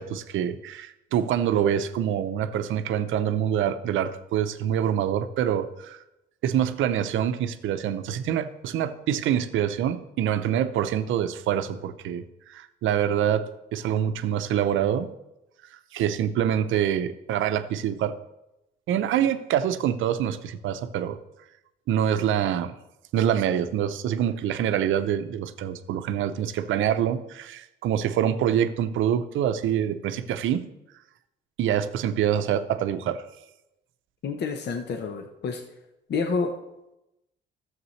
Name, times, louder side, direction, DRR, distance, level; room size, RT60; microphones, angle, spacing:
voice 1, 0.0-6.0 6.4-15.1 15.9-18.2 18.9-21.2 21.9-22.7 23.1-30.6 31.6-33.3, right 9 dB, 80° right, 10 dB, 0.6 m, -25 dB
voice 2, 34.2-35.6 36.1-36.5, left 4 dB, 60° left, 5 dB, 0.8 m, -28 dB
12.5 x 7.4 x 3.2 m, 0.92 s
cardioid pair, 90°, 20 cm